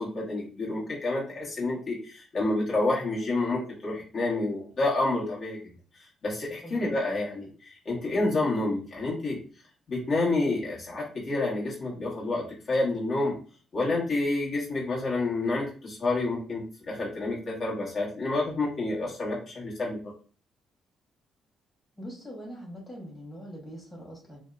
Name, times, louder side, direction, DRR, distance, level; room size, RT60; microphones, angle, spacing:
voice 1, 0.0-5.6 6.2-9.4 9.9-13.3 13.7-20.0, left 2 dB, 55° left, -4 dB, 1.2 m, -29 dB
voice 2, 22.0-24.4, equal, 15° left, -4 dB, 1.2 m, -42 dB
2.7 x 2.1 x 2.4 m, 0.40 s
supercardioid pair, 65°, 0 cm